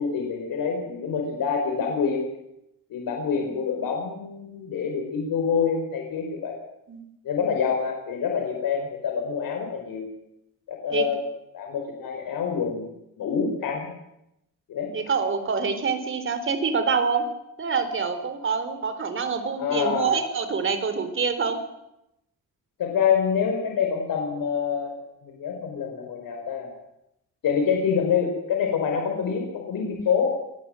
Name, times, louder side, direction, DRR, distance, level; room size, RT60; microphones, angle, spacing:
voice 1, 0.0-2.2 2.9-6.6 7.2-10.1 10.7-11.2 11.5-12.9 13.2-13.9 14.7-14.9 19.6-20.1 22.8-25.0 25.2-26.7 27.4-30.3, left 6 dB, 75° left, 3 dB, 4.9 m, -26 dB
voice 2, 14.9-17.3 17.6-21.6, right 5 dB, 35° right, 9 dB, 3.9 m, -26 dB
26.5 x 18.5 x 7.8 m, 0.83 s
cardioid pair, 130°, 34 cm